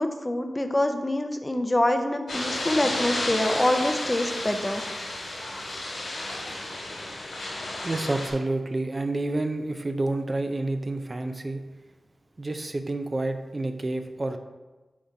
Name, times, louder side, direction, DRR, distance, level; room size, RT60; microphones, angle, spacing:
voice 1, 0.0-4.8, left 1 dB, 20° left, 6 dB, 0.6 m, -25 dB
sound 1, 2.3-8.3, left 1 dB, 90° left, 2.4 m, -32 dB
voice 2, 7.8-11.6 12.4-14.4, right 2 dB, 35° right, 6 dB, 0.5 m, -29 dB
7.5 x 4.1 x 4.7 m, 1.2 s
wide cardioid pair, 75°, 0 cm